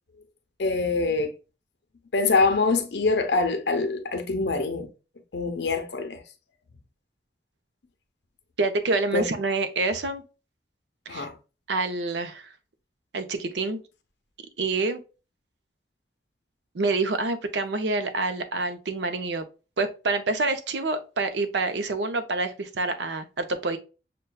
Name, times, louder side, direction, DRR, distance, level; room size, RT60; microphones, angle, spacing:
voice 1, 0.6-1.4 2.1-4.9 5.3-6.2 9.1-9.3 11.1-11.4, left 3 dB, 75° left, 0.7 m, -24 dB
voice 2, 8.6-10.2 11.1-11.3 11.7-12.5 13.1-13.8 14.6-15.0 16.7-19.4 19.8-23.8, right 3 dB, 85° right, 0.6 m, -27 dB
6.6 x 2.2 x 2.2 m
head